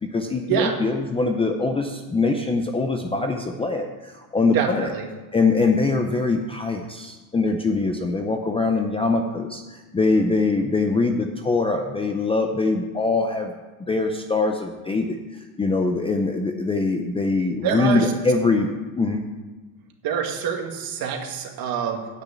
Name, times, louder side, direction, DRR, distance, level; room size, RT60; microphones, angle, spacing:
voice 1, 0.0-4.9 5.3-13.5 13.9-15.2 15.6-19.2, left 3 dB, 15° left, 4 dB, 0.5 m, -23 dB
voice 2, 4.5-5.1 17.6-18.1 20.0-22.2, right 7 dB, 50° right, 3 dB, 1.9 m, -26 dB
9.0 x 6.3 x 8.4 m, 1.3 s
cardioid pair, 150°, 44 cm